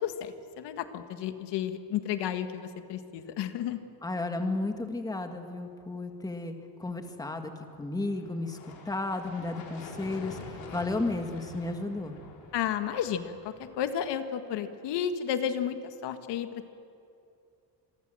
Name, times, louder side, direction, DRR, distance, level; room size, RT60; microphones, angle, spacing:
voice 1, 0.0-3.8 12.5-16.7, left 9 dB, 80° left, 8 dB, 1.7 m, -32 dB
voice 2, 4.0-7.5 7.8-8.6 8.8-12.2, left 2 dB, 10° left, 5 dB, 1.7 m, -33 dB
sound 1, 8.0-13.8, left 4 dB, 60° left, 4.9 m, -46 dB
27.5 x 22.5 x 7.7 m, 2.6 s
cardioid pair, 160°, 41 cm